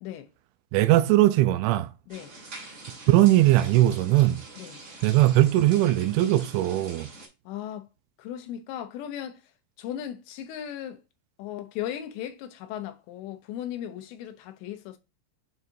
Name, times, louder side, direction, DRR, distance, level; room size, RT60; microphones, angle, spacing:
voice 1, 0.7-1.9 3.1-4.4 5.0-7.1, right 15 dB, 85° right, 2.9 m, -20 dB
sound 1, 2.1-7.3, right 2 dB, 35° right, 1.7 m, -44 dB
voice 2, 7.5-7.9 8.2-9.4 9.8-11.0 11.4-15.0, left 11 dB, 80° left, 2.9 m, -37 dB
9.3 x 4.1 x 2.7 m
omnidirectional pair, 5.2 m